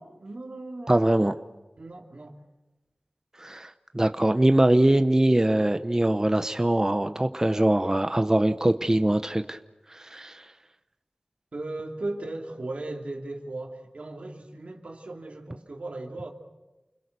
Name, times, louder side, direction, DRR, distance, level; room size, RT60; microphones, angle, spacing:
voice 1, 0.0-0.9 1.8-2.4 11.5-16.3, right 2 dB, 80° right, 2 dB, 2.9 m, -37 dB
voice 2, 0.9-1.4 3.4-9.6 9.9-10.5, right 1 dB, 25° right, 8 dB, 0.8 m, -22 dB
29.0 x 21.5 x 6.8 m, 1.1 s
wide cardioid pair, 45°, 2 cm